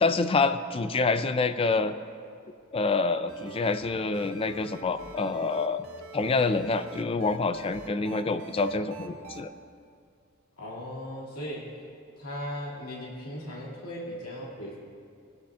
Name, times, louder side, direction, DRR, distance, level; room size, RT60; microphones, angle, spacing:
voice 1, 0.0-1.9 2.7-5.8 6.1-9.5, left 3 dB, 25° left, 11 dB, 0.4 m, -27 dB
sound 1, 3.3-9.4, right 2 dB, 65° right, 1.0 m, -46 dB
voice 2, 10.6-11.7 12.2-14.8, equal, 80° left, -5 dB, 2.3 m, -37 dB
19.5 x 11.5 x 2.4 m, 2.3 s
head